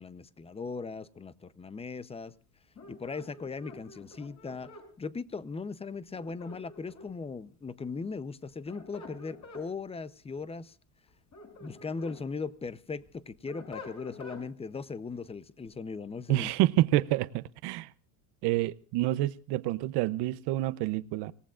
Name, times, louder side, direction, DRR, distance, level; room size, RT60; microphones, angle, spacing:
voice 1, 0.0-2.3 2.9-4.7 5.0-10.8 11.6-16.5, left 4 dB, 15° left, 0.7 m, -38 dB
sound 1, 2.7-4.9 6.1-7.2 8.4-9.7 11.1-12.2 12.7-14.4, left 3 dB, 35° left, 7.3 m, -47 dB
voice 2, 16.3-17.9 18.4-21.3, right 16 dB, 60° right, 0.8 m, -28 dB
26.0 x 17.5 x 2.5 m
supercardioid pair, 115°, 46 cm